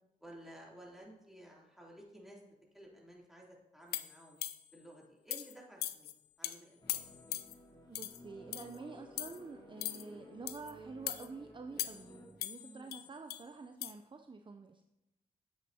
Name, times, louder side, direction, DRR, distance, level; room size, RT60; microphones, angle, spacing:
voice 1, 0.2-2.4 2.7-4.4 4.7-6.1 6.4-6.9 12.6-13.0, right 1 dB, ahead, -3 dB, 3.0 m, -54 dB
sound 1, 3.9-4.8 5.3-5.5 5.8-6.1 6.4-6.6 6.9-7.5 8.0-8.2 8.5-8.8 9.2-9.4 9.8-10.0 10.5-10.7 11.1-11.3 11.8-12.1 12.4-13.4 13.8-13.9, left 12 dB, 80° left, 0.4 m, -40 dB
sound 2, 6.8-12.3, left 1 dB, 25° left, 2.9 m, -55 dB
voice 2, 7.9-14.8, right 4 dB, 30° right, 6 dB, 0.6 m, -48 dB
9.4 x 7.7 x 2.8 m, 0.90 s
supercardioid pair, 40°, 16 cm